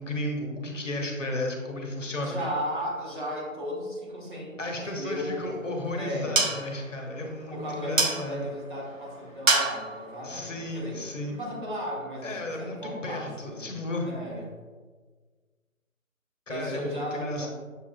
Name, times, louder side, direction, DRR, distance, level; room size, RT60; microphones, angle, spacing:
voice 1, 0.0-2.4 4.6-8.5 10.2-11.4 12.2-14.1 16.5-17.5, left 1 dB, 60° left, 2 dB, 0.9 m, -33 dB
voice 2, 2.2-5.5 5.9-6.4 7.5-11.0 11.3-12.3 12.6-13.7 14.0-14.4 16.5-17.5, equal, 35° right, -4 dB, 1.1 m, -35 dB
sound 1, 5.2-11.6, right 3 dB, 70° right, 0.7 m, -31 dB
7.0 x 2.4 x 2.3 m, 1.4 s
figure-of-eight pair, 160°, 42 cm